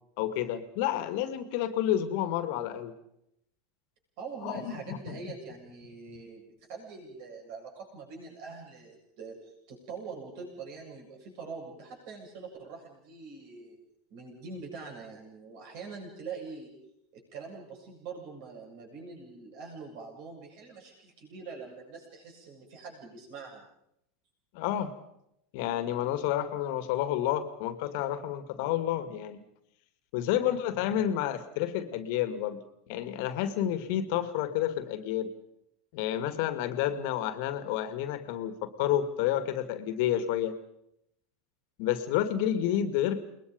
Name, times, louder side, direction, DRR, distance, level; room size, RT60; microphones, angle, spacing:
voice 1, 0.2-2.9 4.4-5.2 24.5-24.9 25.5-29.4 30.1-32.6 32.9-35.3 35.9-40.6 41.8-43.2, left 11 dB, 55° left, 11 dB, 2.2 m, -30 dB
voice 2, 4.2-13.8 14.1-16.7 17.1-23.7 30.4-30.6, right 4 dB, 55° right, 0 dB, 8.0 m, -44 dB
29.5 x 21.0 x 5.3 m, 0.78 s
figure-of-eight pair, 85°, 0 cm